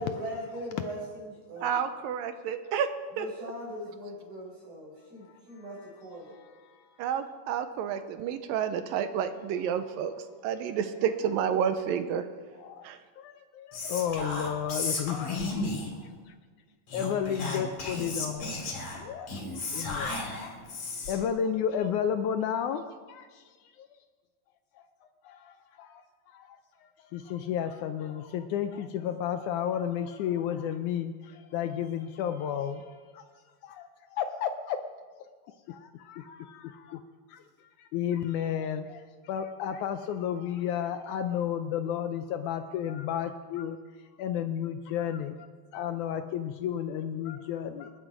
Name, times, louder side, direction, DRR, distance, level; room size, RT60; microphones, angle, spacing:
voice 1, 0.0-1.8 3.1-6.3, equal, 50° right, -3 dB, 6.4 m, -39 dB
voice 2, 1.6-2.9 3.2-3.3 7.0-10.1 10.4-12.3 12.8-13.0, right 8 dB, 80° right, 10 dB, 2.4 m, -30 dB
voice 3, 13.2-16.4 16.9-18.5 18.9-19.4 19.7-20.5 21.1-23.4 23.8-23.9 24.8-24.9 25.2-26.6 27.1-33.2 33.6-34.8 35.5-37.0 37.3-37.4 37.8-43.8 44.2-45.5 45.7-47.9, left 9 dB, 80° left, 8 dB, 1.7 m, -32 dB
Whispering, 13.7-16.0 16.9-21.3, left 2 dB, 45° left, 3.4 m, -34 dB
27.5 x 9.9 x 5.0 m, 1.5 s
omnidirectional pair, 4.2 m